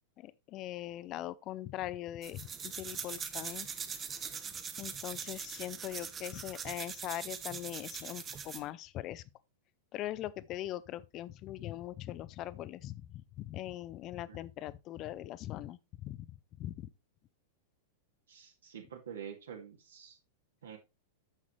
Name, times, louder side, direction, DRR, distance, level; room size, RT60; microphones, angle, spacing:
voice 1, 0.2-3.7 4.8-9.2 9.9-16.3 16.6-16.9, left 14 dB, 35° left, 0.6 m, -41 dB
sound 1, 2.2-8.7, right 6 dB, 20° right, 1.0 m, -42 dB
voice 2, 18.3-20.2 20.6-20.8, right 8 dB, 65° right, 2.2 m, -47 dB
10.0 x 7.3 x 3.1 m
figure-of-eight pair, 95°, 0 cm